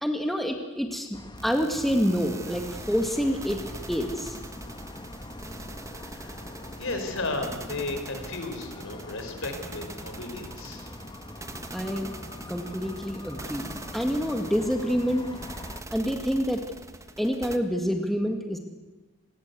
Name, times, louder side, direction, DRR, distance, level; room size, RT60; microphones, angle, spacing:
voice 1, 0.0-3.6 3.9-4.4 11.7-12.2 12.5-15.3 15.9-16.7 17.2-18.6, equal, ahead, 3 dB, 2.0 m, -27 dB
sound 1, 1.1-15.8, left 1 dB, 20° left, 1.3 m, -43 dB
sound 2, 1.4-17.6, right 2 dB, 15° right, 1.4 m, -43 dB
voice 2, 6.0-10.9, left 2 dB, 65° left, 6 dB, 4.8 m, -34 dB
27.5 x 20.5 x 8.2 m, 1.1 s
head